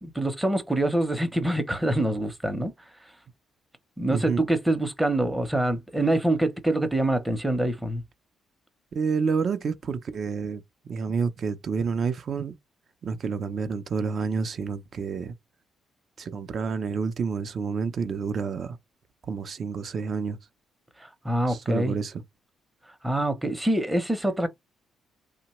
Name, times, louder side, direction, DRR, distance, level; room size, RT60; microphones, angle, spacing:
voice 1, 0.0-2.7 4.0-8.0 21.0-21.9 23.0-24.5, right 1 dB, 10° right, 0.7 m, -25 dB
voice 2, 4.1-4.4 8.9-12.6 13.0-15.4 16.2-18.8 19.2-20.4 21.5-22.2, right 5 dB, 50° right, 0.5 m, -29 dB
2.9 x 2.1 x 2.9 m
cardioid pair, 90°, 0 cm